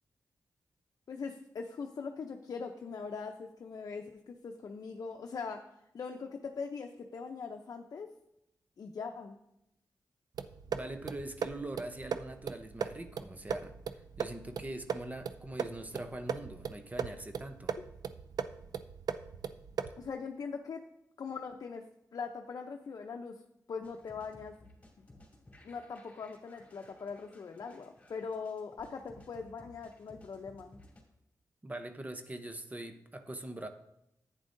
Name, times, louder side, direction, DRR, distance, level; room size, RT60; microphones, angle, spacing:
voice 1, 1.1-5.6 5.9-8.1 8.8-9.4 20.0-20.8 21.2-21.8 22.1-23.4 23.7-24.5 25.0-25.1 25.6-30.8, left 5 dB, 65° left, 3 dB, 0.6 m, -41 dB
sound 1, 10.4-20.1, right 7 dB, 80° right, 0.4 m, -39 dB
voice 2, 10.7-17.8 31.6-33.7, right 1 dB, 25° right, 7 dB, 0.8 m, -43 dB
sound 2, 23.8-31.0, left 1 dB, 20° left, 2.6 m, -58 dB
10.5 x 8.9 x 2.6 m, 0.83 s
cardioid pair, 75°, 7 cm